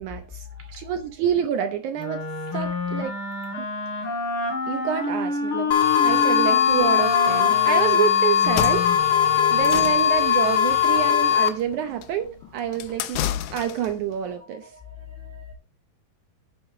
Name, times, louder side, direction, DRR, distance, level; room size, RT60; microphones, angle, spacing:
voice 1, 0.0-0.4 0.7-2.3 2.5-3.1 3.6-3.7 4.7-5.8 6.0-8.9 9.5-14.7, right 9 dB, 70° right, 2.1 m, -27 dB
voice 2, 0.5-0.9 3.6-3.8 9.1-9.2 14.6-15.5, left 7 dB, 5° right, 1.9 m, -43 dB
Wind instrument woodwind instrument, 2.0-10.0, left 2 dB, 40° left, 4.7 m, -29 dB
sound 1, 5.7-11.5, left 9 dB, 55° left, 1.4 m, -20 dB
Library door, 8.3-14.0, left 11 dB, 70° left, 2.0 m, -32 dB
10.5 x 8.1 x 3.8 m
omnidirectional pair, 3.9 m